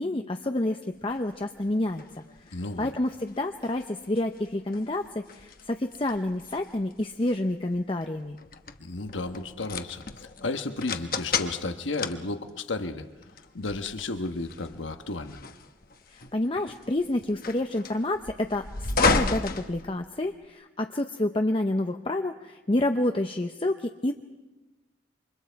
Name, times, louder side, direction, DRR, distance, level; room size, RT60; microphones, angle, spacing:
voice 1, 0.0-8.4 16.1-24.1, left 1 dB, 30° left, 5 dB, 0.6 m, -29 dB
sound 1, 1.1-20.5, left 4 dB, 50° left, 1.1 m, -34 dB
voice 2, 2.5-2.9 8.8-13.0 13.5-15.4, left 3 dB, 85° left, 8 dB, 1.2 m, -33 dB
28.5 x 25.5 x 4.6 m, 1.1 s
head